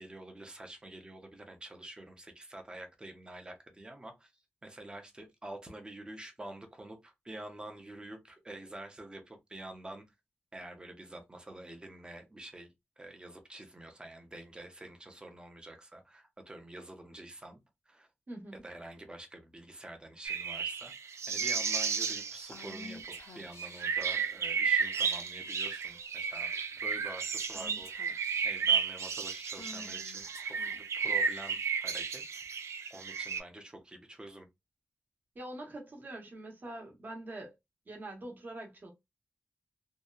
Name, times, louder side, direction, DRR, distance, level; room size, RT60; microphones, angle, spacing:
voice 1, 0.0-4.3 4.6-10.0 10.5-17.6 17.9-18.1 18.5-20.9 21.3-32.4 32.9-34.5, right 1 dB, 20° right, 0.6 m, -47 dB
voice 2, 18.3-18.6 35.3-37.5 37.9-38.9, right 1 dB, 45° right, 0.9 m, -44 dB
sound 1, 20.2-33.4, right 6 dB, 85° right, 0.4 m, -33 dB
Female speech woman speaking / Whispering, 22.5-24.0 25.0-25.4 25.8-26.0 26.3-26.8 27.5-28.6 29.5-31.5, left 3 dB, 70° left, 0.7 m, -51 dB
2.7 x 2.1 x 2.3 m
wide cardioid pair, 150°, 5 cm